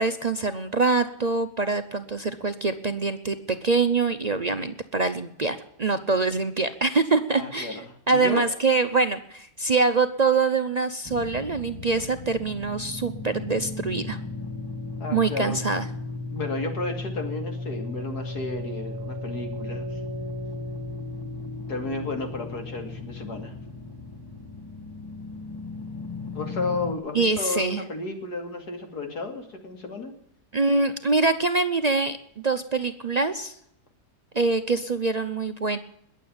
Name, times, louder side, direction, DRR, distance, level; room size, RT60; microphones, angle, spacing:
voice 1, 0.0-3.4 3.6-7.8 8.1-14.2 15.1-15.9 27.1-27.8 30.5-32.2 32.4-33.6 34.3-35.8, right 3 dB, 55° right, 8 dB, 0.4 m, -24 dB
voice 2, 7.3-8.5 15.0-15.6 16.3-20.0 21.7-23.5 26.3-30.2, left 3 dB, 65° left, 5 dB, 3.0 m, -33 dB
sound 1, 11.0-26.9, left 3 dB, 15° left, 1.3 m, -35 dB
21.0 x 7.6 x 8.7 m, 0.75 s
omnidirectional pair, 1.9 m